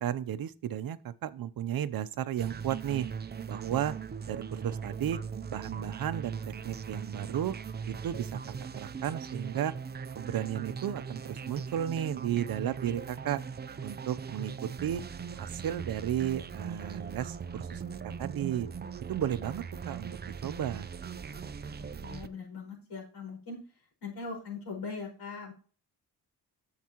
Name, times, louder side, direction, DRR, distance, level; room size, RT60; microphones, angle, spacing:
voice 1, 0.0-3.1 3.5-3.9 4.3-5.2 5.5-7.5 7.9-8.4 8.8-9.7 10.2-13.4 13.8-15.0 15.3-17.8 18.2-18.7 19.1-20.9, right 10 dB, 60° right, 0.7 m, -33 dB
sound 1, 2.4-22.3, right 6 dB, 25° right, 0.5 m, -40 dB
voice 2, 21.8-23.6 24.0-25.5, left 4 dB, 80° left, 5.1 m, -40 dB
9.7 x 7.5 x 3.0 m
cardioid pair, 130°, 39 cm